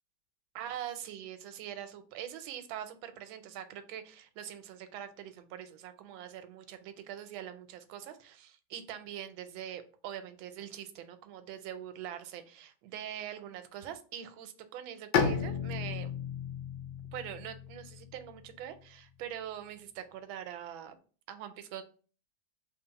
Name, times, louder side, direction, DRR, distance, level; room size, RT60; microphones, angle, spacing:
voice 1, 0.5-16.1 17.1-20.9 21.3-21.8, right 10 dB, 90° right, 10 dB, 1.4 m, -43 dB
Bowed string instrument, 15.1-18.8, left 6 dB, 80° left, 1.3 m, -34 dB
3.5 x 2.3 x 3.9 m, 0.39 s
omnidirectional pair, 2.1 m